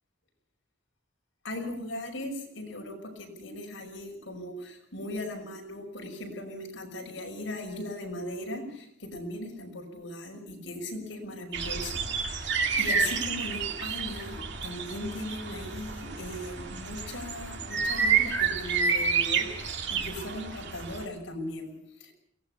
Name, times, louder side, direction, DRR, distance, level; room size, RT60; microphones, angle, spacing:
voice 1, 1.4-19.5 19.9-22.1, left 1 dB, 65° left, 1 dB, 6.0 m, -38 dB
sound 1, 11.5-21.0, right 6 dB, 65° right, 2.3 m, -30 dB
22.5 x 17.5 x 6.8 m, 0.73 s
head